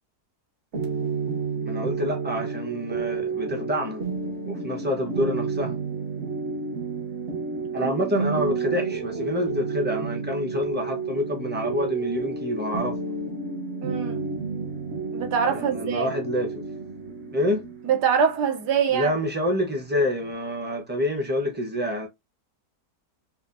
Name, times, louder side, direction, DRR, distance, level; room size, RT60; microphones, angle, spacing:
sound 1, 0.7-20.3, right 4 dB, 45° right, 1.3 m, -31 dB
voice 1, 1.6-4.0 4.4-5.8 7.7-13.0 15.5-16.6 17.3-17.7 18.9-22.1, left 1 dB, 10° right, 0.5 m, -27 dB
voice 2, 13.8-14.3 15.1-16.1 17.8-19.1, right 7 dB, 85° right, 1.4 m, -24 dB
5.6 x 2.2 x 2.5 m
omnidirectional pair, 1.7 m